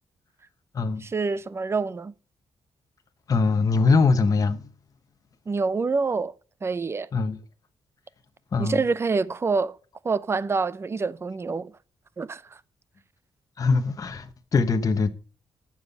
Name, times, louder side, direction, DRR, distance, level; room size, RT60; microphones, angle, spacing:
voice 1, 1.0-2.1 5.5-6.3 6.6-7.1 8.6-9.8 10.0-11.7 12.2-12.4, right 4 dB, 30° right, 0.7 m, -26 dB
voice 2, 3.3-4.7 7.1-7.4 8.5-8.8 13.6-15.1, left 4 dB, 40° left, 1.1 m, -22 dB
12.0 x 7.4 x 7.0 m
wide cardioid pair, 130°, 9 cm